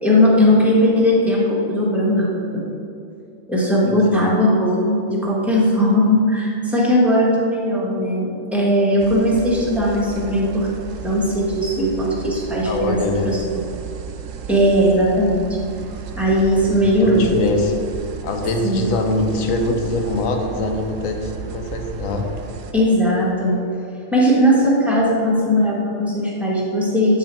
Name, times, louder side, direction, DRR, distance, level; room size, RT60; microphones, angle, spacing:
voice 1, 0.0-2.6 3.5-10.7 11.0-13.4 14.5-15.4 16.2-17.3 18.6-18.9 22.7-23.5 24.1-27.2, equal, ahead, -5 dB, 1.2 m, -18 dB
voice 2, 3.9-4.2 12.6-13.3 17.0-17.7 18.2-22.3, left 2 dB, 85° left, 4 dB, 1.2 m, -23 dB
sound 1, 9.0-22.7, right 7 dB, 70° right, 0.8 m, -34 dB
9.0 x 3.8 x 4.3 m, 2.6 s
omnidirectional pair, 1.4 m